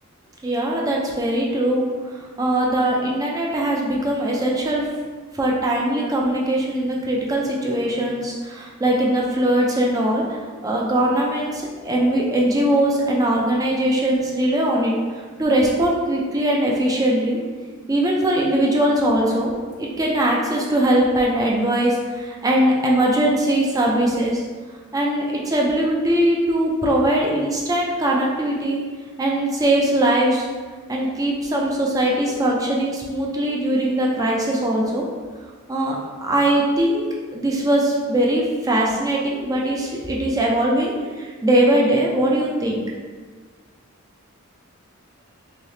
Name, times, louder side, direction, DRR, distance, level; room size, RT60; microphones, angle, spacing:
voice 1, 0.4-1.8 2.1-4.8 5.3-14.9 15.4-17.4 17.9-19.5 19.8-24.4 24.9-28.8 29.2-30.5 30.9-35.0 35.7-36.0 36.2-37.1 37.3-42.8, right 1 dB, 15° right, -2 dB, 0.3 m, -21 dB
3.2 x 2.8 x 2.7 m, 1.5 s
head